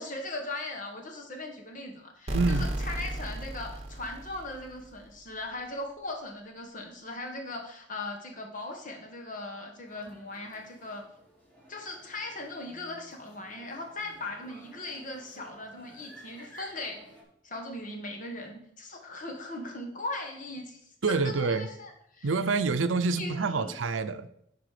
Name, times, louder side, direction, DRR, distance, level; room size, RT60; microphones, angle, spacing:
voice 1, 0.0-11.1 11.7-17.1 17.4-20.8 21.1-22.3 23.2-23.7, left 2 dB, 45° left, 2 dB, 1.3 m, -39 dB
sound 1, 2.3-5.0, right 1 dB, 35° right, 1.1 m, -34 dB
voice 2, 2.3-2.7 21.0-21.7 22.2-24.3, right 4 dB, 85° right, 12 dB, 0.6 m, -27 dB
sound 2, 9.9-17.2, right 1 dB, 10° left, 2.2 m, -54 dB
9.0 x 5.1 x 4.9 m, 0.71 s
head